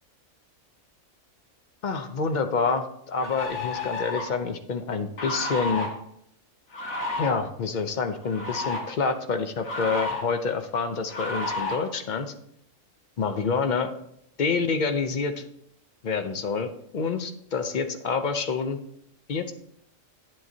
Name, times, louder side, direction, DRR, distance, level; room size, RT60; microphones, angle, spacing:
voice 1, 1.8-5.9 7.2-12.3 13.2-13.9 14.4-15.4 16.0-18.8 19.3-19.5, left 5 dB, 55° left, 8 dB, 0.5 m, -27 dB
sound 1, 2.3-2.4 3.2-4.4 5.2-5.9 6.7-7.3 8.2-8.8 9.6-10.2 11.1-11.8, left 2 dB, 85° left, 1.8 m, -31 dB
10.5 x 7.5 x 2.7 m, 0.74 s
omnidirectional pair, 1.4 m